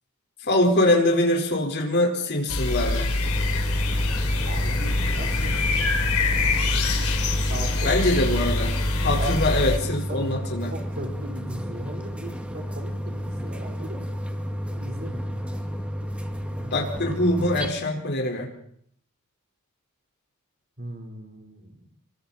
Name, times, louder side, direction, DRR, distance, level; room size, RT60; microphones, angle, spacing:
voice 1, 0.5-3.1 7.8-8.7 9.0-10.7 16.7-18.5, left 1 dB, 50° left, 1 dB, 5.0 m, -23 dB
sound 1, 2.5-9.8, left 2 dB, 85° left, 3.9 m, -24 dB
sound 2, 3.2-17.7, equal, 5° right, 2.1 m, -32 dB
voice 2, 4.5-5.9 6.2-6.5 7.5-8.2 9.1-9.4 10.1-14.0 14.7-15.4 16.5-16.8 20.8-21.9, right 1 dB, 45° right, 2 dB, 4.5 m, -38 dB
28.0 x 23.5 x 4.4 m, 0.66 s
head